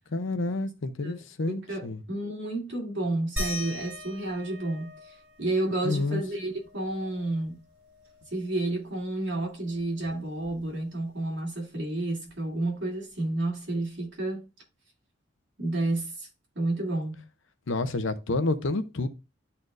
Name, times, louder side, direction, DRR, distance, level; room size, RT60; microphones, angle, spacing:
voice 1, 0.1-2.0 5.8-6.2 17.7-19.1, left 2 dB, 75° left, 0.7 m, -29 dB
voice 2, 1.0-7.6 8.3-14.5 15.6-16.3 16.5-17.2, right 2 dB, 60° right, 2.6 m, -31 dB
sound 1, 3.4-8.5 8.8-8.9 9.3-11.0 12.3-12.4 13.1-13.2, left 1 dB, 10° right, 4.6 m, -41 dB
12.0 x 4.3 x 2.5 m
head